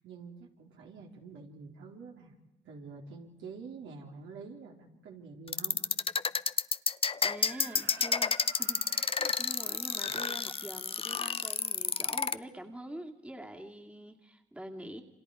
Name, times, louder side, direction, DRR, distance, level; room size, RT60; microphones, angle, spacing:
voice 1, 0.0-2.3 2.6-5.8, right 4 dB, 75° right, 0 dB, 4.1 m, -47 dB
sound 1, 5.5-12.3, left 5 dB, 30° left, 0.7 m, -30 dB
voice 2, 7.2-15.0, right 1 dB, 5° right, 3 dB, 2.3 m, -45 dB
Screaming, 7.4-12.3, right 6 dB, 60° right, 1.8 m, -52 dB
28.5 x 26.5 x 4.9 m, 1.1 s
cardioid pair, 90°, 20 cm